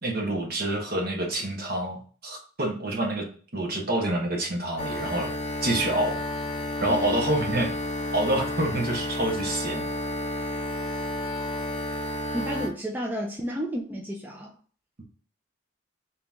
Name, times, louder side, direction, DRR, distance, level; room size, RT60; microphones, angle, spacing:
voice 1, 0.0-3.2 3.5-5.3 5.6-6.2 6.8-7.7 8.1-9.9, right 1 dB, 50° right, 0 dB, 1.1 m, -27 dB
sound 1, 4.8-12.7, left 1 dB, 35° left, 0.8 m, -31 dB
voice 2, 12.3-14.6, equal, 10° right, -1 dB, 0.4 m, -32 dB
3.8 x 2.9 x 3.5 m, 0.42 s
head